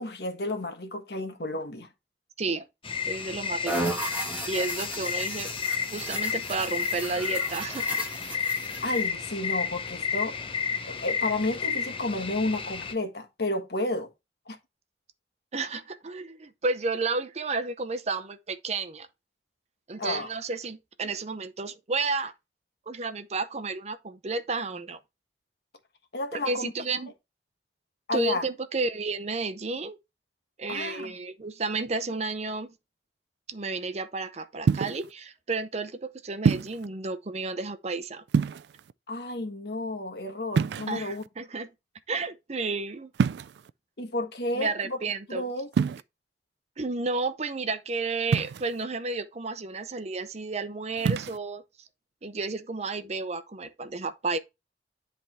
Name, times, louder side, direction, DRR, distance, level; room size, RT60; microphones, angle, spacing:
voice 1, 0.0-1.9 8.8-10.4 10.9-14.1 14.5-14.6 20.0-20.3 26.1-26.7 28.1-28.4 30.7-31.1 39.1-41.2 44.0-45.0 45.3-45.7, left 2 dB, 65° left, 1.4 m, -31 dB
sound 1, 2.8-12.9, left 6 dB, 30° left, 0.8 m, -32 dB
voice 2, 3.1-3.7 4.5-5.5 5.9-7.9 15.5-19.1 19.9-22.3 22.9-25.0 26.3-27.1 28.1-30.0 30.6-32.7 33.5-38.2 40.9-41.7 42.1-43.1 44.5-45.4 46.8-51.6 52.2-54.4, right 3 dB, 40° right, 0.6 m, -32 dB
sound 2, 3.7-9.1, right 2 dB, 10° right, 1.2 m, -35 dB
sound 3, 34.7-35.1 36.4-36.9 38.3-38.9 40.5-41.3 43.1-43.7 45.7-46.0 48.3-48.8 51.0-51.4, right 5 dB, 75° right, 0.3 m, -26 dB
10.5 x 3.5 x 4.2 m
head